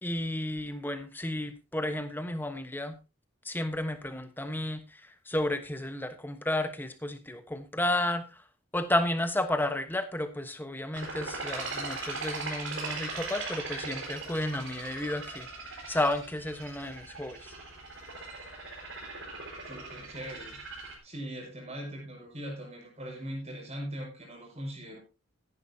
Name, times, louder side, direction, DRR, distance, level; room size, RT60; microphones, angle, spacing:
voice 1, 0.0-3.0 3.4-8.4 8.7-17.5, left 1 dB, 10° left, 9 dB, 1.1 m, -32 dB
sound 1, 10.9-21.0, right 3 dB, 65° right, 4.9 m, -39 dB
voice 2, 19.7-20.6 21.0-25.0, equal, 30° right, 0 dB, 5.7 m, -40 dB
15.0 x 11.0 x 2.8 m, 0.29 s
head